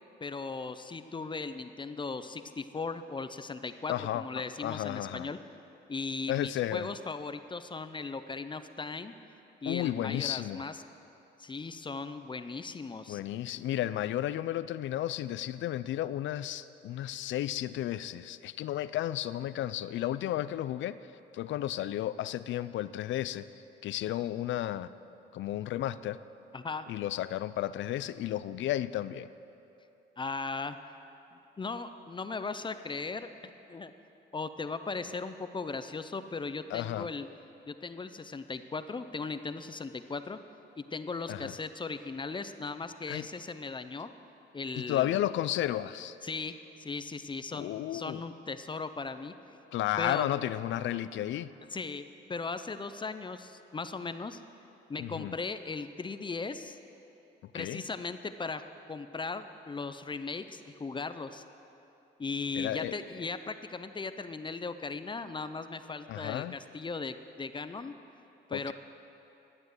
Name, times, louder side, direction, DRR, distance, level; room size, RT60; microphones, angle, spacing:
voice 1, 0.2-5.4 5.9-9.1 9.6-10.8 11.4-13.2 26.5-26.9 30.2-30.8 31.3-33.3 33.7-33.9 34.3-37.3 37.7-40.4 40.8-44.1 44.5-45.2 46.2-46.5 46.8-49.3 50.0-50.3 51.7-52.0 52.3-54.4 54.9-56.8 57.5-61.4 62.2-67.9 68.5-68.7, left 4 dB, 25° left, 10 dB, 0.6 m, -38 dB
voice 2, 3.9-5.3 6.3-6.9 9.7-10.6 13.1-21.0 21.3-23.5 23.8-24.9 25.3-26.2 26.9-29.3 36.7-37.1 41.3-41.5 43.1-43.3 44.8-46.2 47.5-48.2 49.7-51.5 55.0-55.3 57.5-57.8 62.6-62.9 66.1-66.6 68.5-68.7, left 13 dB, 70° left, 15 dB, 0.5 m, -33 dB
12.5 x 8.9 x 7.9 m, 2.9 s
cardioid pair, 90°, 20 cm